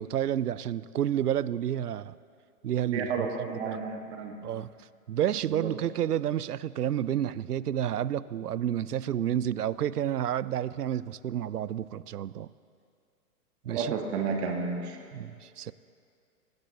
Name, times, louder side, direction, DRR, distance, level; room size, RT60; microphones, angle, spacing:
voice 1, 0.0-2.1 2.6-3.8 4.4-12.5 13.6-13.9 15.1-15.7, right 10 dB, 70° right, 19 dB, 0.5 m, -30 dB
voice 2, 2.9-4.4 5.4-5.7 13.7-15.0, right 5 dB, 40° right, 3 dB, 1.5 m, -32 dB
19.5 x 18.5 x 2.9 m, 2.3 s
figure-of-eight pair, 115°, 48 cm